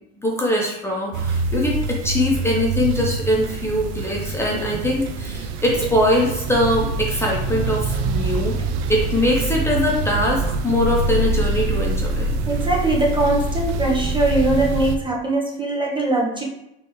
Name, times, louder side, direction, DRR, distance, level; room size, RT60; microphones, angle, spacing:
voice 1, 0.2-8.5 8.9-12.3, left 1 dB, 10° left, -3 dB, 1.0 m, -22 dB
sound 1, 1.1-15.0, right 2 dB, 70° right, 0.6 m, -25 dB
voice 2, 4.3-4.7 12.5-16.4, right 2 dB, 15° right, -2 dB, 1.1 m, -21 dB
4.0 x 3.5 x 3.2 m, 0.83 s
hypercardioid pair, 85°, 31 cm